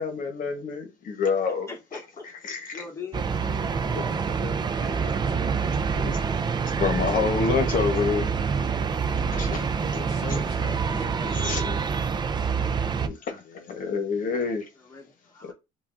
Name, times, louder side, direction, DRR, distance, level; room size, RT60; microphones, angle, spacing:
voice 1, 0.0-2.8 3.9-4.0 6.0-6.2 6.8-8.3 9.1-9.7 9.9-10.4 10.8-11.8 13.0-13.4 13.7-14.6 15.4-15.5, left 5 dB, 50° left, 1.1 m, -28 dB
voice 2, 1.7-2.3 2.7-3.4 4.7-5.3 10.2-11.5 14.8-15.5, left 4 dB, 15° left, 1.5 m, -42 dB
sound 1, 3.1-13.1, right 5 dB, 25° right, 0.4 m, -26 dB
voice 3, 3.4-5.5 9.3-11.7 13.4-13.8, left 6 dB, 80° left, 0.7 m, -45 dB
5.6 x 2.4 x 2.5 m
cardioid pair, 110°, 17 cm